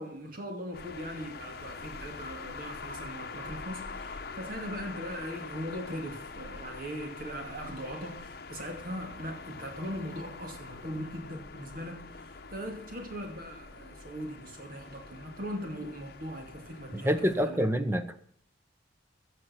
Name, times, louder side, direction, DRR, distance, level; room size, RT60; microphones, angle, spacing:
voice 1, 0.0-17.6, equal, 50° right, 2.4 m, -40 dB
sound 1, 0.7-17.5, left 4 dB, 55° left, 0.9 m, -44 dB
voice 2, 16.9-18.2, equal, 15° right, 0.9 m, -27 dB
15.5 x 6.6 x 5.9 m
head